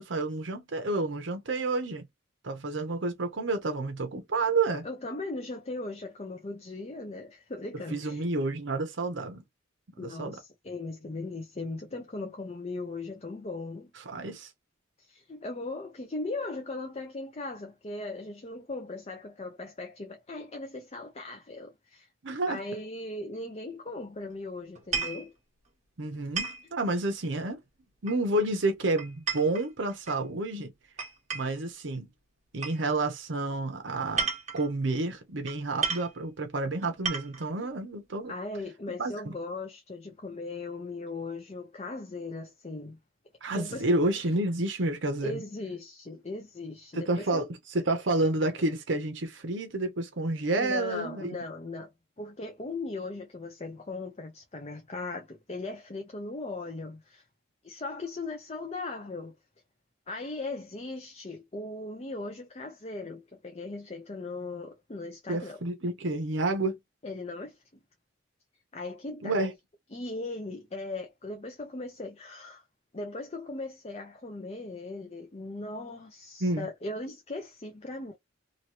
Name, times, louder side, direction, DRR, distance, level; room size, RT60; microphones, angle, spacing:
voice 1, 0.0-2.0 2.4-4.9 7.9-9.4 10.0-10.4 14.0-14.5 22.2-22.6 26.0-27.6 28.0-30.7 31.3-32.1 32.5-38.3 39.0-39.1 43.4-45.4 46.9-47.5 47.7-51.3 65.3-66.8 69.1-69.5 76.4-76.7, right 2 dB, 70° right, 0.8 m, -30 dB
voice 2, 4.8-8.2 10.0-13.9 15.0-22.1 22.5-25.3 37.6-37.7 38.3-43.0 43.5-43.9 45.2-47.5 50.6-51.9 52.2-57.2 57.6-59.4 60.1-65.6 67.0-67.6 68.7-69.3 69.9-72.6 72.9-78.2, left 2 dB, 35° left, 0.6 m, -38 dB
sound 1, 24.7-25.3 26.4-26.7 28.1-28.5 29.0-30.2 31.0-31.6 32.6-32.8 34.0-34.7 35.5-35.6 35.8-36.1 36.8-37.5, right 5 dB, 40° right, 1.3 m, -33 dB
2.9 x 2.7 x 2.9 m
head